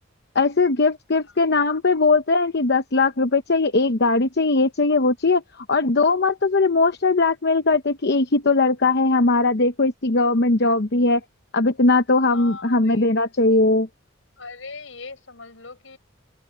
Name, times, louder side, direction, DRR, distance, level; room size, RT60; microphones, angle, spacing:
voice 1, 0.3-11.2 11.5-13.9, left 3 dB, 55° left, 0.9 m, -19 dB
voice 2, 12.3-13.0 14.4-16.0, left 4 dB, 80° left, 5.9 m, -39 dB
head